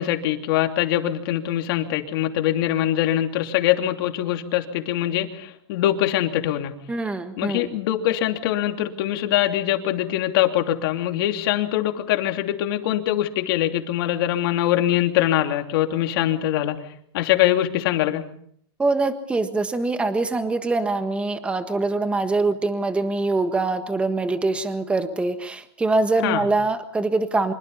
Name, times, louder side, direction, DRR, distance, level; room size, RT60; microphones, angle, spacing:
voice 1, 0.0-6.7 7.4-16.8 17.1-18.2 26.2-26.5, left 13 dB, 60° left, 5 dB, 3.0 m, -23 dB
voice 2, 6.9-7.7 18.8-27.5, right 3 dB, 10° right, 9 dB, 1.5 m, -24 dB
25.5 x 23.5 x 5.6 m, 0.64 s
supercardioid pair, 155°, 14 cm